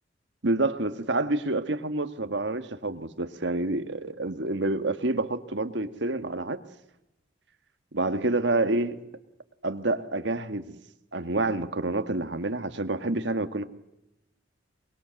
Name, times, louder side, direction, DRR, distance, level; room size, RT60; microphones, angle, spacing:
voice 1, 0.4-6.6 7.9-9.0 9.6-10.7 11.1-13.6, right 2 dB, 70° right, 1.6 m, -28 dB
23.5 x 22.0 x 7.7 m
head